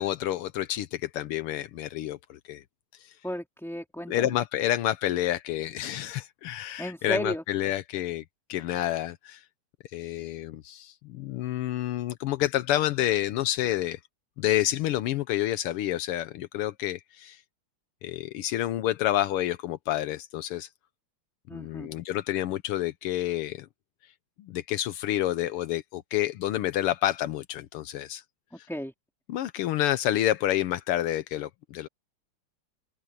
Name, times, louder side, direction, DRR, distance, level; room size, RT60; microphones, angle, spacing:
voice 1, 0.0-2.6 3.0-3.1 4.1-8.2 8.5-9.4 9.9-14.0 14.4-17.4 18.0-20.7 21.5-23.7 24.4-28.2 29.3-31.9, left 13 dB, 85° left, 1.7 m, -29 dB
voice 2, 3.2-4.3 6.8-7.4 21.5-21.9 28.5-28.9, equal, ahead, 2.6 m, -34 dB
omnidirectional pair, 2.4 m